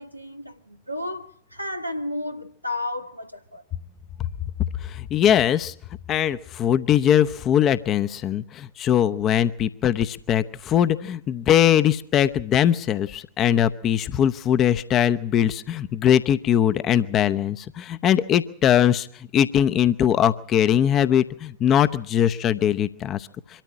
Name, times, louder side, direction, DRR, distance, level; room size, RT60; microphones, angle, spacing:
voice 1, 0.0-3.6, left 2 dB, 90° left, 1.1 m, -32 dB
voice 2, 4.8-5.7 6.1-23.6, left 10 dB, 30° left, 0.8 m, -21 dB
24.0 x 13.5 x 8.5 m
figure-of-eight pair, 90°, 0 cm